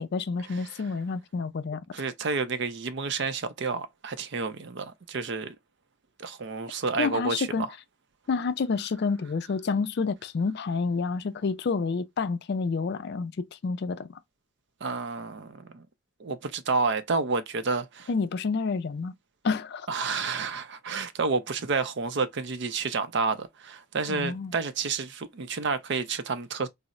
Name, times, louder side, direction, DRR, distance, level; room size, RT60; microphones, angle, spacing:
voice 1, 0.0-1.8 7.0-7.7 8.3-13.3 13.6-14.2 18.1-19.1 19.4-19.9 24.1-24.5, left 4 dB, 55° left, 0.4 m, -29 dB
voice 2, 1.9-5.6 6.2-7.7 14.8-15.9 16.2-18.1 19.9-26.7, right 4 dB, 60° right, 0.5 m, -30 dB
4.0 x 2.0 x 2.3 m
head